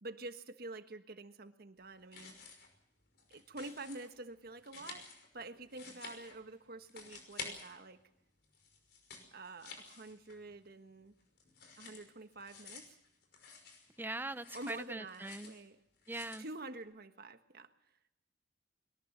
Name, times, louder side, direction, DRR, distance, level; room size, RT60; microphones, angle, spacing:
voice 1, 0.0-2.4 3.3-5.1 5.3-8.0 9.3-11.1 11.8-13.0 14.5-15.8 16.4-17.7, right 2 dB, 55° right, 8 dB, 1.5 m, -48 dB
sound 1, 2.0-2.8 3.1-4.1 4.6-6.6 6.9-8.1 8.4-10.6 10.9-14.0 14.3-15.6 16.0-16.5, left 4 dB, 65° left, 5.6 m, -51 dB
voice 2, 14.0-15.5 16.1-16.4, right 2 dB, 10° right, 13 dB, 0.8 m, -41 dB
22.5 x 19.0 x 7.3 m, 0.79 s
head